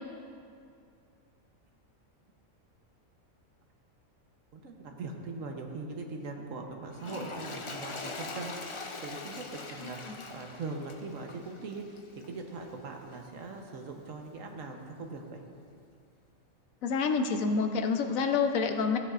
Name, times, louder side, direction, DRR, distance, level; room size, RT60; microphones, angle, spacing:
voice 1, 4.5-15.4, right 3 dB, 70° right, 3 dB, 1.3 m, -41 dB
Toilet flush, 6.9-12.4 13.1-13.2, left 3 dB, 55° left, 0.3 m, -42 dB
voice 2, 16.8-19.0, left 5 dB, 80° left, 6 dB, 1.1 m, -28 dB
15.5 x 9.5 x 2.5 m, 2.4 s
omnidirectional pair, 1.4 m